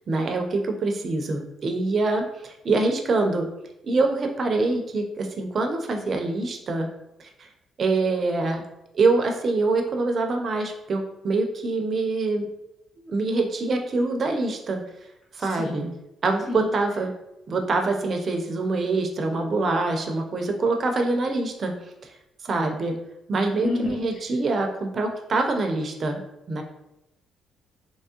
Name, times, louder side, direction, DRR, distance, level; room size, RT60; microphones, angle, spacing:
voice 1, 0.1-3.5 3.8-6.9 7.2-7.5 7.8-8.6 8.9-12.5 13.0-14.8 15.3-15.8 16.2-17.1 17.5-21.9 22.4-22.9 23.3-26.2 26.5-26.6, right 3 dB, 45° right, 4 dB, 0.6 m, -25 dB
voice 2, 15.5-15.9 16.5-16.7 23.6-24.0, left 3 dB, 60° left, -3 dB, 1.4 m, -29 dB
3.5 x 3.0 x 2.8 m, 0.88 s
cardioid pair, 90°, 0 cm